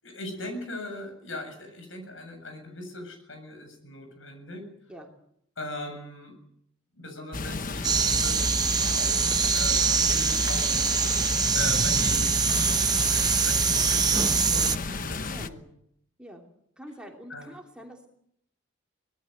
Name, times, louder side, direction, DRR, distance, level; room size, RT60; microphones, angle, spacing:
voice 1, 0.0-4.7 5.6-6.3 6.9-10.9 11.5-12.5 13.1-15.6 17.3-17.6, left 2 dB, 75° left, 6 dB, 7.5 m, -40 dB
sound 1, 7.3-15.5, left 3 dB, 45° left, 1.0 m, -33 dB
sound 2, 7.8-14.8, right 6 dB, 20° right, 0.9 m, -24 dB
voice 2, 16.8-18.1, equal, 5° right, 1 dB, 3.0 m, -45 dB
24.5 x 19.5 x 8.1 m, 0.72 s
head